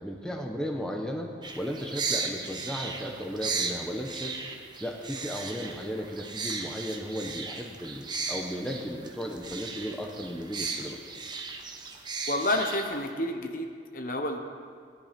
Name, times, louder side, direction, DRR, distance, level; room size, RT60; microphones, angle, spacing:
voice 1, 0.0-4.3 4.8-11.0, equal, 5° left, 1 dB, 1.0 m, -35 dB
sound 1, 1.4-13.1, right 4 dB, 25° right, 1.0 m, -36 dB
voice 2, 12.3-14.4, left 1 dB, 45° left, 4 dB, 1.1 m, -29 dB
17.0 x 10.5 x 5.2 m, 2.2 s
head